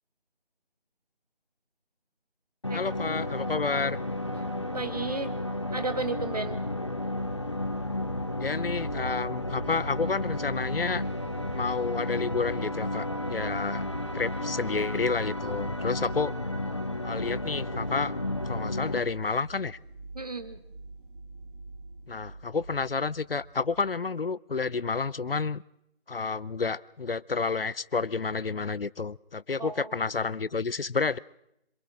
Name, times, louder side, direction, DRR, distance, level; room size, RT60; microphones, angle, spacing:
sound 1, 2.6-19.0, left 1 dB, 30° left, 0.9 m, -33 dB
voice 1, 2.7-4.0 8.4-11.0 11.5-13.8 14.1-16.3 17.0-18.1 18.4-19.8 22.1-25.6 26.1-31.2, left 4 dB, 65° left, 21 dB, 0.7 m, -30 dB
voice 2, 4.7-5.3 5.7-6.6 20.1-20.6 29.6-29.9, right 3 dB, 40° right, 10 dB, 1.7 m, -33 dB
sound 2, 7.1-23.9, right 3 dB, 55° right, 2.9 m, -43 dB
27.0 x 26.5 x 3.7 m, 0.78 s
figure-of-eight pair, 175°, 31 cm